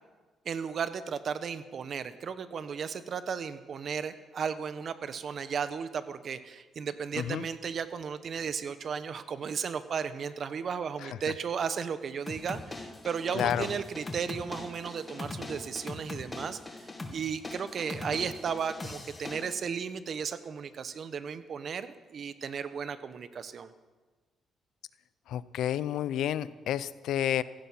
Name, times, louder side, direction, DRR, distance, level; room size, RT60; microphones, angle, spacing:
voice 1, 0.4-23.7, right 6 dB, 55° right, 12 dB, 1.1 m, -35 dB
voice 2, 7.1-7.5 11.0-11.2 13.3-13.7 25.3-27.4, left 11 dB, 80° left, 17 dB, 0.6 m, -30 dB
sound 1, 12.3-19.5, left 2 dB, 25° left, 2.2 m, -41 dB
16.0 x 15.5 x 5.7 m, 1.3 s
cardioid pair, 90°, 0 cm